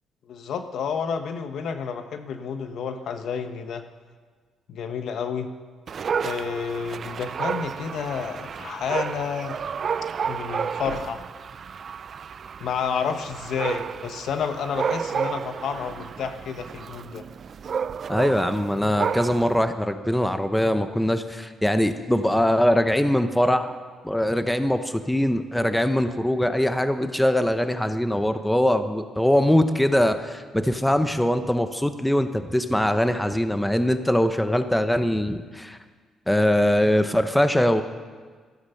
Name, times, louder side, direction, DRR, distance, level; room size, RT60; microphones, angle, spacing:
voice 1, 0.3-3.9 4.7-5.5 6.2-9.6 10.3-11.2 12.6-17.2, left 6 dB, 70° left, 8 dB, 1.1 m, -30 dB
Dog, 5.9-19.6, right 7 dB, 50° right, 0.4 m, -31 dB
voice 2, 18.1-23.8 24.0-35.8 36.3-37.8, left 1 dB, 5° left, 9 dB, 1.0 m, -22 dB
16.5 x 13.5 x 5.7 m, 1.5 s
cardioid pair, 90°, 0 cm